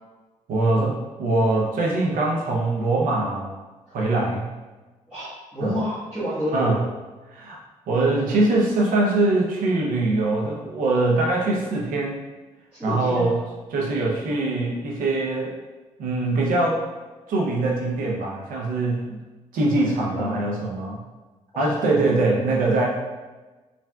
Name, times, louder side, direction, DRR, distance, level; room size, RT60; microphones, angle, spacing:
voice 1, 0.5-3.5 3.9-4.5 5.6-5.7 6.5-6.8 7.3-7.6 7.9-12.2 12.8-13.4 13.7-15.6 16.0-16.8 17.3-19.2 19.5-21.0 21.6-22.9, right 2 dB, 85° right, -2 dB, 0.7 m, -22 dB
voice 2, 5.1-6.8 12.7-13.3 20.1-20.4 21.5-21.9, equal, 10° right, -14 dB, 1.3 m, -29 dB
3.3 x 2.5 x 2.2 m, 1.2 s
cardioid pair, 70°, 14 cm